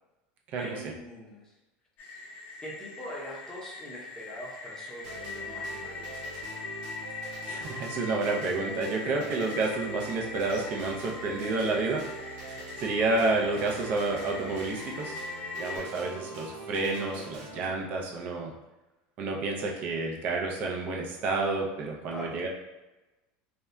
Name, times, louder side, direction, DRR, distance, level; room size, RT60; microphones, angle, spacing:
voice 1, 0.5-1.5 2.6-6.2 15.7-15.9 22.1-22.4, left 1 dB, 10° left, -4 dB, 0.7 m, -42 dB
sound 1, 2.0-15.8, left 3 dB, 45° left, 0.6 m, -41 dB
sound 2, 5.0-17.7, right 2 dB, 75° right, 1.1 m, -43 dB
voice 2, 7.5-15.2 15.5-18.5 19.2-22.5, right 3 dB, 40° right, 0 dB, 0.6 m, -30 dB
2.7 x 2.3 x 3.2 m, 1.0 s
supercardioid pair, 150°, 4 cm